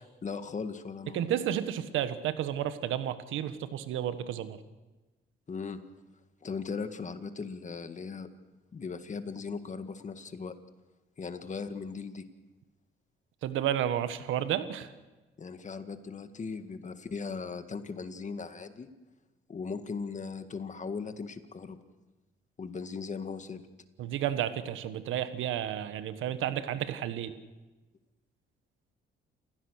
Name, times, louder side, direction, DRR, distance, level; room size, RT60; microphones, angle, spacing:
voice 1, 0.0-1.3 5.5-5.8 6.4-8.3 8.7-10.5 11.2-12.2 15.4-18.9 19.5-21.8 22.6-23.6, left 5 dB, 40° left, 9 dB, 1.9 m, -38 dB
voice 2, 1.1-4.6 13.4-14.9 24.0-27.3, right 10 dB, 85° right, 11 dB, 1.4 m, -31 dB
29.0 x 16.0 x 6.5 m, 1.2 s
cardioid pair, 90°, 20 cm